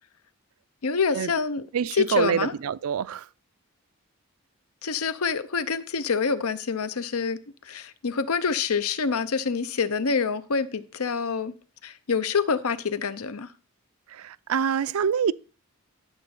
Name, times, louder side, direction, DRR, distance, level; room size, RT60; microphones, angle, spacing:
voice 1, 0.8-1.7 1.9-2.5 4.8-7.4 7.6-11.5 11.8-13.5, left 5 dB, 85° left, 0.7 m, -26 dB
voice 2, 1.7-3.3 14.1-15.3, right 7 dB, 80° right, 0.4 m, -26 dB
11.0 x 4.0 x 7.0 m
head